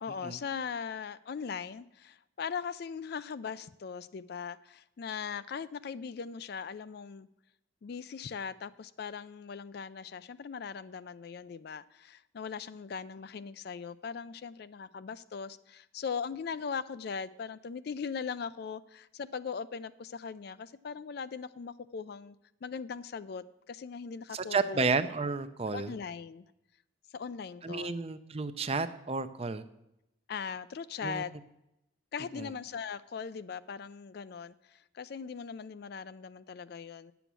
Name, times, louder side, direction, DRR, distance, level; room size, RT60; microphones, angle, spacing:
voice 1, 0.0-7.3 7.8-22.4 22.6-24.8 25.7-26.5 27.1-28.0 30.3-31.3 32.1-37.1, left 6 dB, 55° left, 15 dB, 0.4 m, -40 dB
voice 2, 24.3-25.9 27.6-29.6 31.0-31.2 32.3-32.5, right 4 dB, 30° right, 12 dB, 0.5 m, -32 dB
10.0 x 7.0 x 6.1 m, 0.87 s
head